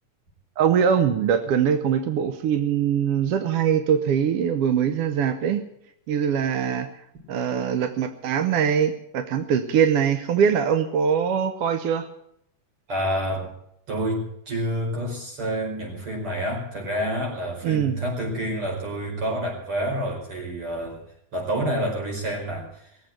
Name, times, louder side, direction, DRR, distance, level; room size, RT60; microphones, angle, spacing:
voice 1, 0.6-5.6 6.1-6.9 7.3-12.1 17.6-18.0, right 8 dB, 65° right, 9 dB, 1.5 m, -22 dB
voice 2, 12.9-13.5 13.9-21.0 21.3-22.9, equal, 45° right, 0 dB, 5.8 m, -28 dB
20.0 x 7.9 x 8.9 m, 0.74 s
omnidirectional pair, 3.4 m